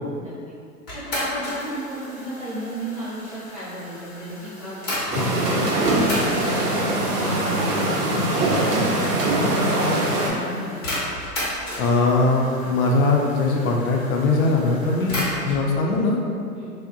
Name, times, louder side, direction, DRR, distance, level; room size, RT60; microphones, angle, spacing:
voice 1, 0.2-0.5 0.9-7.9 8.3-11.0 16.5-16.7, equal, 25° right, -12 dB, 0.4 m, -34 dB
sound 1, 0.9-5.3 5.8-15.6, left 1 dB, 20° left, 0.8 m, -34 dB
sound 2, 5.1-10.3, right 1 dB, 75° right, 0.7 m, -22 dB
voice 2, 11.8-16.2, left 3 dB, 65° left, -1 dB, 0.5 m, -21 dB
2.6 x 2.1 x 2.5 m, 2.3 s
hypercardioid pair, 125°, 47 cm